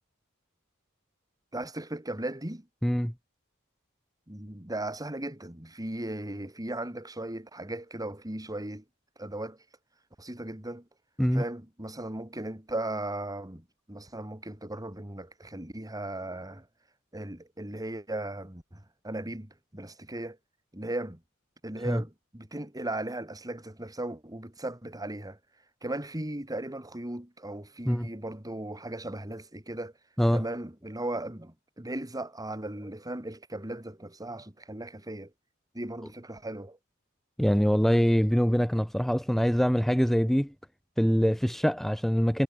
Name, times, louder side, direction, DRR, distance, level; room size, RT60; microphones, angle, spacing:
voice 1, 1.5-2.7 4.3-8.8 9.2-9.6 10.2-10.9 11.3-16.7 17.1-20.4 20.7-21.2 21.6-25.4 25.8-29.9 30.3-35.3 35.7-36.8, right 1 dB, 15° right, 2.8 m, -37 dB
voice 2, 2.8-3.1 11.2-11.4 21.9-22.0 27.9-28.1 30.2-30.4 37.4-40.5 41.0-42.4, equal, ahead, 1.8 m, -24 dB
head